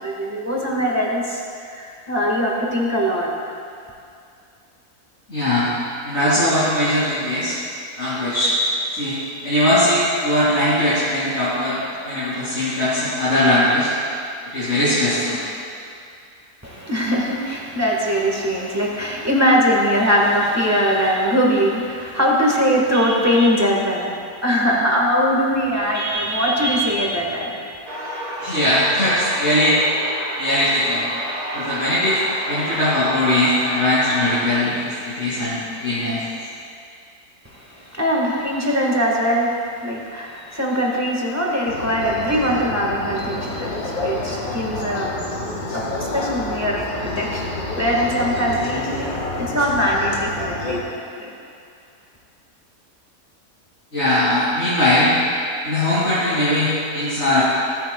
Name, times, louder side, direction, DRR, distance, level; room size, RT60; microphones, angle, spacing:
voice 1, 0.0-1.4 1.7-3.3 16.6-27.5 37.4-45.1 45.7-51.3, equal, 10° right, -3 dB, 1.3 m, -21 dB
voice 2, 5.3-5.7 6.0-7.6 8.0-8.5 8.9-9.2 9.4-11.8 12.0-13.9 14.5-15.4 28.4-29.8 30.4-31.1 31.5-32.2 32.5-36.2 53.9-55.1 55.6-57.4, left 1 dB, 45° left, -12 dB, 2.8 m, -20 dB
sound 1, 27.9-34.6, right 1 dB, 80° right, 2.0 m, -31 dB
sound 2, 41.7-50.8, left 2 dB, 70° left, 1.9 m, -28 dB
17.0 x 9.2 x 2.2 m, 2.4 s
omnidirectional pair, 1.7 m